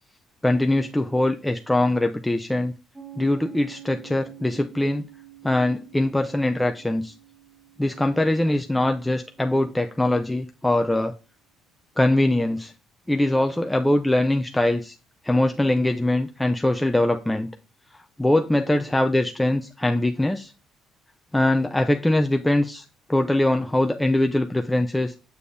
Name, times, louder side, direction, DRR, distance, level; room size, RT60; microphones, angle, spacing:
voice 1, 0.4-2.7 3.2-5.0 5.4-7.1 7.8-11.1 12.0-12.7 13.1-14.9 15.2-17.5 18.2-20.5 21.3-22.8 23.1-25.1, left 1 dB, 5° left, 5 dB, 0.4 m, -22 dB
Piano, 2.9-10.2, right 13 dB, 25° right, 1.2 m, -48 dB
6.9 x 6.6 x 2.6 m, 0.33 s
cardioid pair, 105°, 0 cm